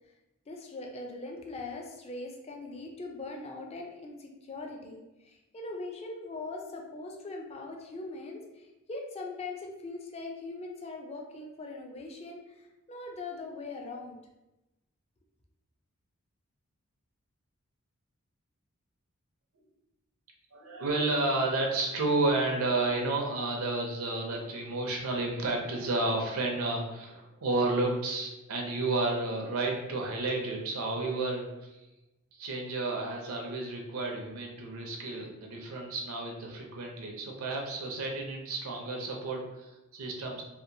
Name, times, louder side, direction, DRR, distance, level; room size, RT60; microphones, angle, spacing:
voice 1, 0.5-14.2, left 3 dB, 30° left, 1 dB, 0.4 m, -41 dB
voice 2, 20.5-31.8 32.4-40.4, right 2 dB, 75° right, 0 dB, 0.5 m, -31 dB
2.8 x 2.5 x 2.6 m, 0.98 s
head